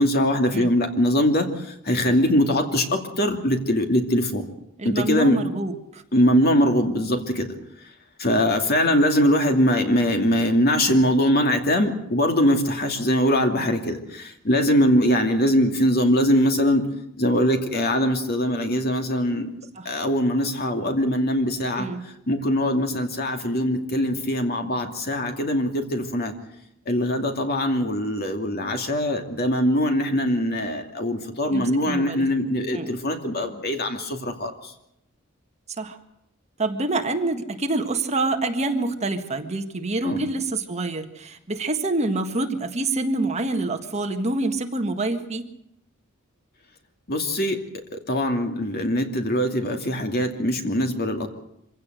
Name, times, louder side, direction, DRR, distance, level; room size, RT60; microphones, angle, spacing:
voice 1, 0.0-4.5 4.8-5.4 6.1-7.5 8.2-16.9 17.2-19.5 19.8-21.9 22.3-26.3 26.9-34.7 40.0-40.2 47.1-47.6 48.1-51.3, equal, 45° left, 5 dB, 2.6 m, -22 dB
voice 2, 4.8-6.0 19.8-19.9 21.7-22.0 31.5-32.9 35.8-36.0 36.6-45.4, right 2 dB, 30° right, 5 dB, 1.7 m, -27 dB
25.0 x 16.5 x 8.0 m, 0.80 s
head